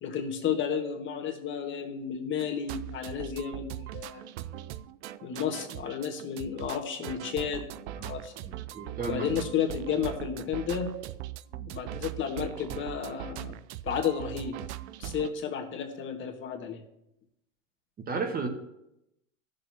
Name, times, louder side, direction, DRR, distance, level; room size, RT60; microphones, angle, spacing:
voice 1, 0.0-4.2 5.2-8.3 9.1-10.9 11.5-13.6 13.8-14.6 15.0-16.8, left 7 dB, 30° left, 3 dB, 1.6 m, -32 dB
sound 1, 2.4-15.3, right 13 dB, 60° right, 0.5 m, -40 dB
voice 2, 8.5-9.3 18.1-18.5, right 4 dB, 25° right, 5 dB, 1.3 m, -33 dB
15.0 x 6.6 x 2.8 m, 0.85 s
hypercardioid pair, 105°, 38 cm